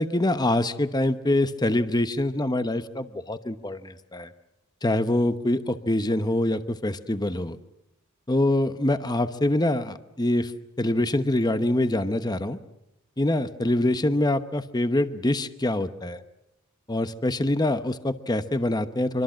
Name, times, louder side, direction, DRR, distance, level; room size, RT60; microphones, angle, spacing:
voice 1, 0.0-4.3 4.8-7.6 8.3-10.5 10.8-12.6 13.2-16.2 16.9-19.2, left 1 dB, 20° left, 10 dB, 1.0 m, -25 dB
25.0 x 25.0 x 7.6 m, 0.86 s
head